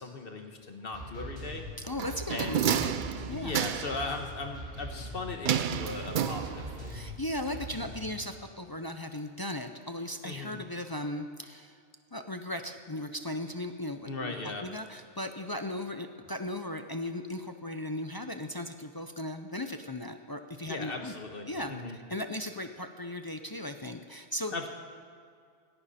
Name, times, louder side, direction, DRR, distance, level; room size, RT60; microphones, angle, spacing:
voice 1, 0.0-1.6 2.3-2.6 3.3-7.0 10.2-10.6 14.1-14.7 20.7-22.0 24.5-24.7, left 3 dB, 50° left, 4 dB, 1.5 m, -38 dB
sound 1, 0.9-8.1, equal, 80° right, 3.7 m, -42 dB
voice 2, 1.8-2.9 3.3-3.6 6.9-11.8 12.1-21.1 21.5-24.5, left 1 dB, 30° left, 6 dB, 0.4 m, -37 dB
sound 2, 2.0-4.1 5.5-6.9 7.2-7.3, right 9 dB, 55° right, 0.6 m, -30 dB
17.0 x 17.0 x 4.2 m, 2.3 s
omnidirectional pair, 1.2 m